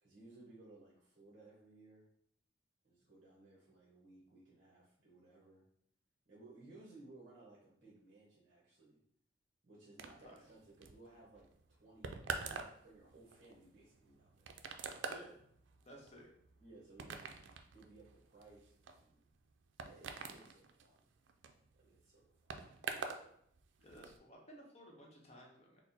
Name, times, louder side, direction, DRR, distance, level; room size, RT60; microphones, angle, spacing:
voice 1, 0.0-2.1 2.8-5.6 6.3-9.0 9.6-14.6 15.2-15.3 16.6-17.3 17.7-19.2 19.8-21.1 21.7-22.2, right 2 dB, 45° right, -5 dB, 1.0 m, -60 dB
sound 1, 10.0-23.3 23.5-24.2, right 5 dB, 75° right, 0.4 m, -46 dB
voice 2, 15.8-16.3 23.8-25.8, equal, 35° left, -1 dB, 0.9 m, -56 dB
4.4 x 2.1 x 4.0 m, 0.69 s
head